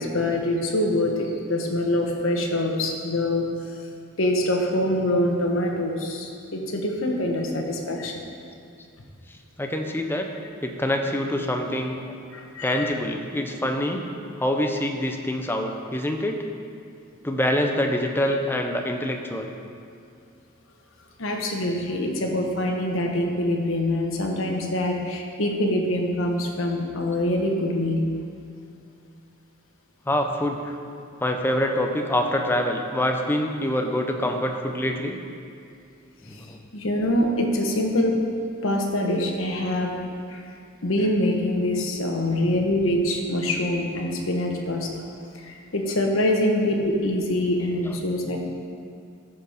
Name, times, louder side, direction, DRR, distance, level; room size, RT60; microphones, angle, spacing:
voice 1, 0.0-3.7 4.2-8.2 12.3-12.9 21.2-28.1 36.3-36.5 36.7-38.1 38.6-40.0 40.3-40.4 40.8-45.0 45.3-48.4, left 1 dB, 75° left, 1 dB, 1.2 m, -25 dB
voice 2, 9.6-10.3 10.6-12.2 12.6-14.1 14.4-16.4 17.2-19.5 30.1-30.8 31.2-35.2 36.3-36.6, left 1 dB, 10° left, 3 dB, 0.6 m, -25 dB
13.0 x 4.7 x 5.0 m, 2.4 s
head